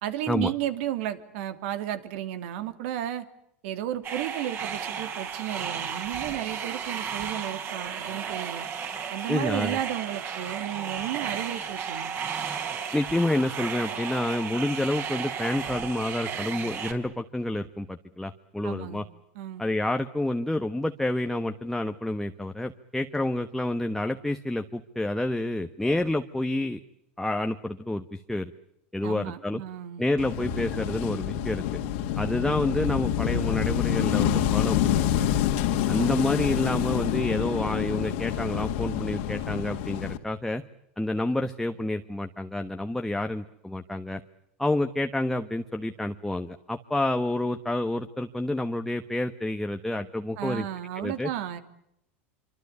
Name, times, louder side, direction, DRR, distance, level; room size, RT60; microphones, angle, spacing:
voice 1, 0.0-3.3 3.6-8.7 9.1-12.1 18.6-19.1 19.3-19.6 29.0-30.0 35.9-36.2 50.4-51.6, right 12 dB, 65° right, 10 dB, 2.9 m, -33 dB
sound 1, 4.0-16.9, right 7 dB, 35° right, 5.0 m, -34 dB
voice 2, 9.3-9.8 12.9-19.0 19.6-26.8 27.2-28.5 28.9-29.6 30.0-31.6 32.2-35.3 35.8-40.6 41.0-44.2 44.6-50.7 50.9-51.3, left 1 dB, 5° left, 5 dB, 1.3 m, -29 dB
Wind / Waves surf, 30.2-40.2, left 10 dB, 70° left, 2.6 m, -27 dB
26.0 x 25.5 x 8.3 m, 0.77 s
supercardioid pair, 115°, 7 cm